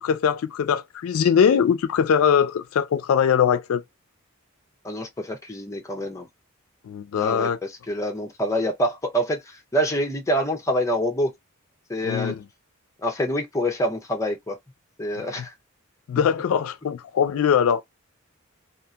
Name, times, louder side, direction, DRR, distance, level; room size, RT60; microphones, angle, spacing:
voice 1, 0.0-3.8 6.8-7.6 12.0-12.4 15.2-15.3 16.1-17.8, left 7 dB, 75° left, 0.3 m, -21 dB
voice 2, 4.8-6.3 7.2-7.5 7.9-9.4 9.7-11.3 11.9-12.3 13.0-14.6 15.0-15.5, equal, 15° left, 0.6 m, -26 dB
2.7 x 2.4 x 2.3 m
head